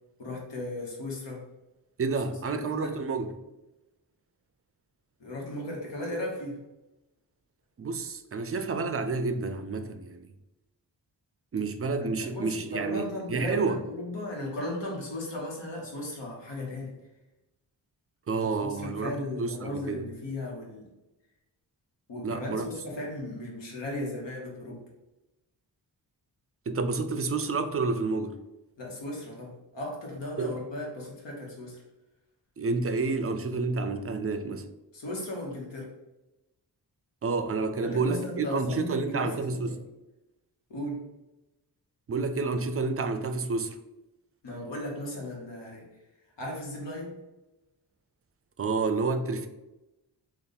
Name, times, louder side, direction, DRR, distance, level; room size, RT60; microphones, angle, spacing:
voice 1, 0.2-1.5 2.5-3.0 5.2-6.6 12.0-16.9 18.4-20.9 22.1-24.8 28.8-31.8 34.9-35.9 37.8-39.8 40.7-41.1 44.4-45.9 46.4-47.2, left 1 dB, 80° left, 1.3 m, -36 dB
voice 2, 2.0-3.3 7.8-10.3 11.5-13.8 18.3-20.1 22.2-22.6 26.7-28.4 30.4-30.6 32.6-34.7 37.2-39.8 42.1-43.8 48.6-49.5, right 4 dB, 35° right, 0.4 m, -29 dB
3.4 x 2.5 x 4.1 m
wide cardioid pair, 90°, 42 cm